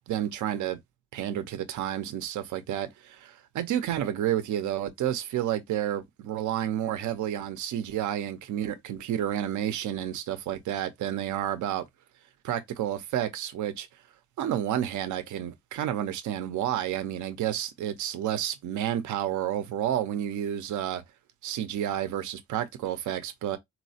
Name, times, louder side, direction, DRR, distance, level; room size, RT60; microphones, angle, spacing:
voice 1, 0.1-0.8 1.1-11.8 12.4-13.9 14.4-21.0 21.4-23.6, right 11 dB, 80° right, 0.7 m, -30 dB
4.3 x 2.1 x 2.7 m
cardioid pair, 90°, 30 cm